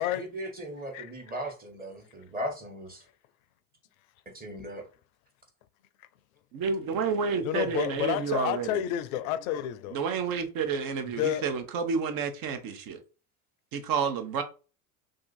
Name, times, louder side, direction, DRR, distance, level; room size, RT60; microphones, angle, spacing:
voice 1, 0.0-3.1 4.2-4.9, equal, 20° right, 1.2 m, -38 dB
voice 2, 6.5-8.7 9.9-13.0 13.7-14.4, right 6 dB, 50° right, 0.9 m, -30 dB
voice 3, 7.4-10.0 11.2-11.5, left 11 dB, 70° left, 0.6 m, -30 dB
2.7 x 2.5 x 4.0 m
hypercardioid pair, 75°, 44 cm